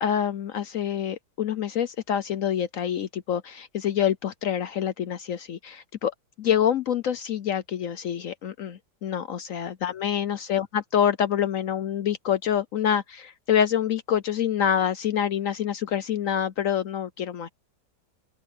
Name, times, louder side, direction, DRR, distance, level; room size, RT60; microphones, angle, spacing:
voice 1, 0.0-6.1 6.4-17.5, left 9 dB, 60° left, 0.9 m, -26 dB
open air
omnidirectional pair, 1.8 m